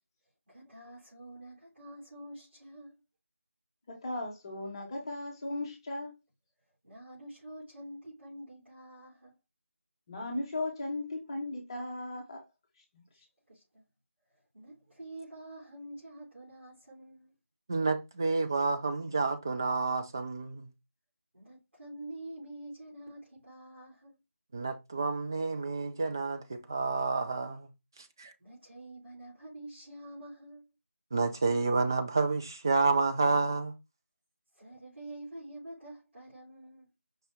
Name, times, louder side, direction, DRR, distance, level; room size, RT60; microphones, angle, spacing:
voice 1, 0.5-3.0 6.8-9.3 13.1-13.8 14.5-17.3 21.3-24.2 28.4-30.6 34.5-36.9, right 1 dB, 55° right, 3.4 m, -47 dB
voice 2, 3.9-6.2 10.1-12.4, left 2 dB, 20° left, 1.0 m, -36 dB
voice 3, 17.7-20.7 24.5-27.7 28.0-28.3 31.1-33.7, right 3 dB, 15° right, 0.3 m, -29 dB
5.4 x 2.7 x 3.4 m
figure-of-eight pair, 165°, 7 cm